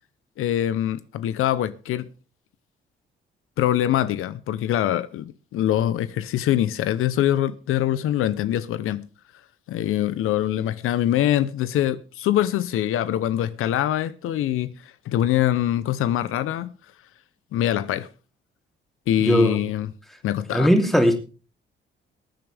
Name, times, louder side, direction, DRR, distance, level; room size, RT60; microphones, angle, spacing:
voice 1, 0.4-2.1 3.6-9.1 9.7-14.7 15.1-16.7 17.5-18.1 19.1-19.9 20.2-20.7, left 12 dB, 80° left, 0.8 m, -24 dB
voice 2, 19.2-19.6 20.5-21.3, equal, ahead, 2.8 m, -19 dB
21.0 x 9.0 x 3.4 m
cardioid pair, 95°, 21 cm